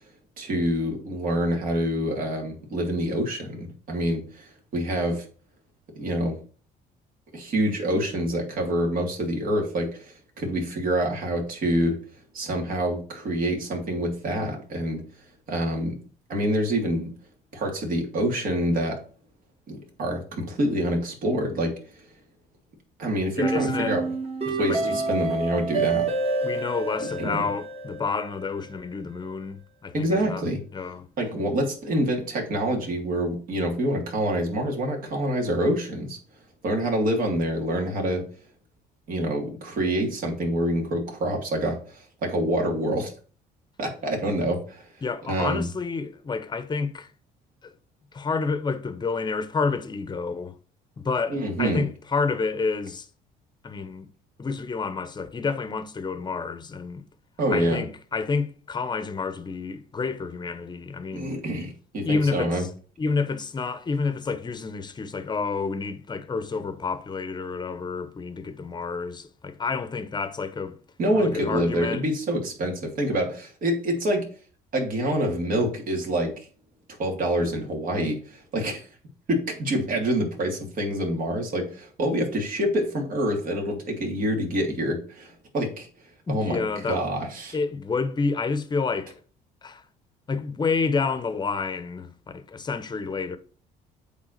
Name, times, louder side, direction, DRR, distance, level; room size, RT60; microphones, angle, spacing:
voice 1, 0.4-5.2 5.9-6.4 7.3-12.0 12.3-15.0 15.5-16.0 16.3-17.1 17.5-19.0 19.7-22.0 23.0-24.0 24.6-26.1 27.0-27.5 29.9-30.6 31.2-36.2 36.6-38.2 39.1-43.1 43.8-44.9 45.3-45.6 51.3-51.9 57.4-57.8 61.1-62.6 71.0-74.3 74.7-76.5 77.0-78.9 79.3-85.9 86.3-87.6, right 1 dB, 55° right, 2.8 m, -26 dB
voice 2, 23.4-24.0 24.5-25.0 26.4-29.6 29.8-30.4 30.7-31.1 45.0-47.1 47.6-47.7 48.1-50.6 51.0-53.1 53.6-54.1 54.4-57.0 57.5-61.3 62.0-62.7 63.0-70.8 71.1-72.1 86.3-87.0 87.5-89.1 89.6-89.8 90.3-93.4, left 4 dB, 25° left, 0.9 m, -29 dB
sound 1, 23.4-28.4, right 3 dB, 35° right, 2.4 m, -28 dB
8.1 x 3.6 x 6.6 m
cardioid pair, 110°, 17 cm